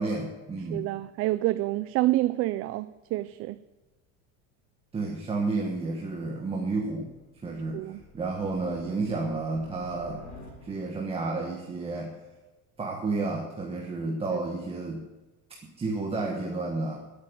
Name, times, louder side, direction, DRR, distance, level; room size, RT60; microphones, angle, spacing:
voice 1, 0.0-0.9 4.9-7.1 7.4-10.2 10.6-12.2 12.8-15.1 15.8-17.0, right 3 dB, 15° right, 0 dB, 1.5 m, -31 dB
voice 2, 0.7-3.6 7.7-8.0 14.3-14.4, right 17 dB, 40° right, 14 dB, 0.4 m, -28 dB
sound 1, 6.5-11.1, left 2 dB, 25° left, 3.1 m, -50 dB
13.0 x 8.7 x 9.8 m, 1.1 s
cardioid pair, 165°, 35 cm